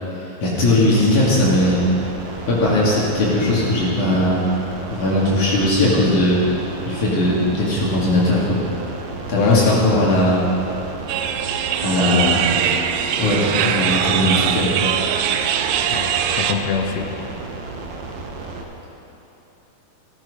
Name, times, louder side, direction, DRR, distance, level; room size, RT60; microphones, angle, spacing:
voice 1, 0.4-1.8 2.5-4.4 4.9-6.4 6.9-8.6 9.3-10.4 11.8-12.4 13.2-14.7, left 1 dB, 55° left, -6 dB, 3.6 m, -18 dB
sound 1, 0.9-18.6, right 3 dB, 65° right, 2.0 m, -33 dB
voice 2, 9.3-10.1 11.9-12.9 14.2-14.6 15.9-17.1, left 6 dB, 90° left, 3 dB, 1.5 m, -26 dB
sound 2, 11.1-16.5, right 9 dB, 80° right, 2.0 m, -21 dB
15.5 x 13.5 x 5.0 m, 3.0 s
omnidirectional pair, 4.3 m